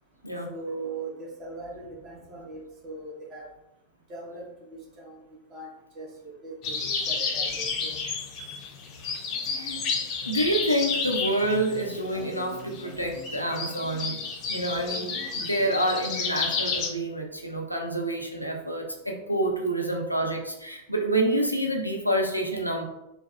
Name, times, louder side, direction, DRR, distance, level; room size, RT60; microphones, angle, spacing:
voice 1, 0.5-3.5 4.1-5.2 5.5-5.7 5.9-7.5 7.8-8.0 19.2-19.6, right 3 dB, 30° right, -3 dB, 1.0 m, -40 dB
sound 1, 6.6-16.9, left 5 dB, 35° left, 0.6 m, -31 dB
voice 2, 9.5-9.8 10.3-14.2 14.5-22.8, right 1 dB, 90° left, 1 dB, 0.5 m, -28 dB
3.3 x 2.1 x 3.3 m, 0.87 s
figure-of-eight pair, 90°, 0 cm